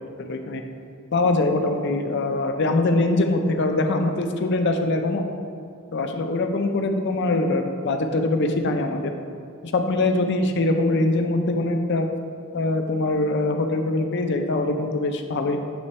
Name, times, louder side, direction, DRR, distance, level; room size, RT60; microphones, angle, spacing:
voice 1, 0.2-0.6 1.1-5.2 5.9-9.1 9.7-12.1 12.5-15.6, left 2 dB, 55° left, 5 dB, 0.5 m, -23 dB
8.2 x 3.2 x 4.2 m, 2.4 s
head